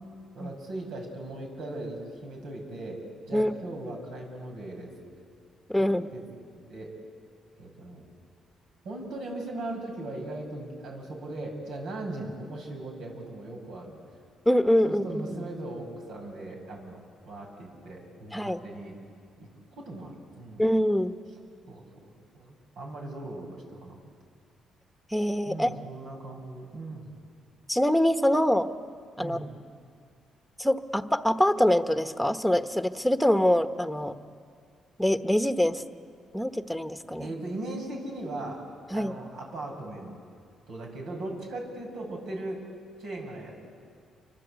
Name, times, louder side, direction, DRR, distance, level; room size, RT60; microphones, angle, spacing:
voice 1, 0.3-5.3 5.7-6.3 6.6-6.9 7.6-8.1 8.8-14.0 14.8-19.0 19.4-19.5 19.8-20.7 21.7-24.0 25.5-27.1 29.2-29.5 37.2-38.7 38.9-40.1 40.7-42.6 43.0-43.7, right 2 dB, 80° right, 0 dB, 7.3 m, -39 dB
voice 2, 5.7-6.1 14.5-15.2 18.3-18.6 20.6-21.1 25.1-25.7 27.7-28.7 29.2-29.4 30.6-34.1 35.0-35.8 36.3-37.3 38.9-39.2, left 1 dB, ahead, 8 dB, 1.2 m, -24 dB
29.0 x 24.5 x 8.3 m, 2.2 s
cardioid pair, 90°, 0 cm